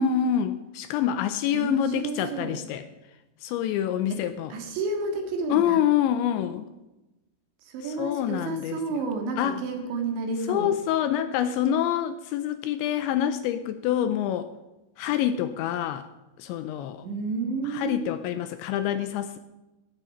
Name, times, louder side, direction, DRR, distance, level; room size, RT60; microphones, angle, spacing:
voice 1, 0.0-2.9 3.4-4.5 5.5-6.7 7.8-8.8 9.4-9.6 10.5-14.5 15.0-16.1 16.4-17.0 17.7-19.4, left 10 dB, 85° left, 11 dB, 2.8 m, -26 dB
voice 2, 1.5-2.6 4.1-4.2 4.5-5.8 7.6-10.7 17.0-18.2, right 3 dB, 70° right, 4 dB, 3.8 m, -31 dB
17.5 x 7.3 x 5.3 m, 1.0 s
omnidirectional pair, 5.6 m